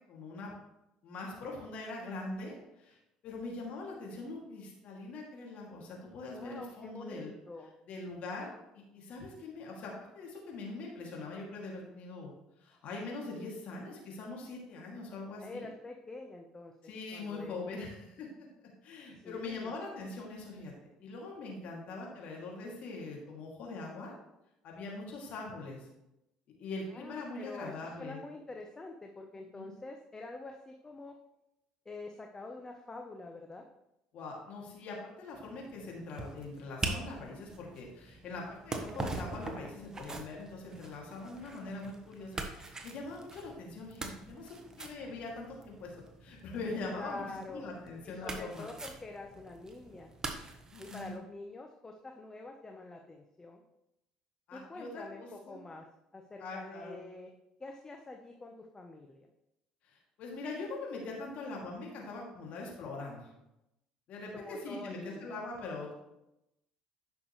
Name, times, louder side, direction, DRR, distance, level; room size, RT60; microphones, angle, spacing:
voice 1, 0.1-0.5 1.0-3.0 3.2-7.3 7.9-12.3 12.6-15.7 16.8-18.5 18.8-24.1 24.6-25.9 26.6-28.2 29.5-29.7 34.1-45.9 46.2-48.7 50.7-51.2 54.5-55.6 56.4-57.0 59.8-63.3 64.1-65.9, left 3 dB, 60° left, -2 dB, 2.5 m, -42 dB
voice 2, 6.3-7.7 15.4-17.6 19.2-19.7 26.9-31.1 31.8-33.6 47.0-47.7 48.0-50.1 50.8-53.6 54.5-55.8 56.1-57.3 57.6-59.3 64.3-65.4, left 2 dB, 25° left, 3 dB, 0.9 m, -46 dB
sound 1, 35.3-51.2, right 2 dB, 25° right, 1.3 m, -43 dB
10.0 x 6.1 x 3.2 m, 0.88 s
hypercardioid pair, 70°, 3 cm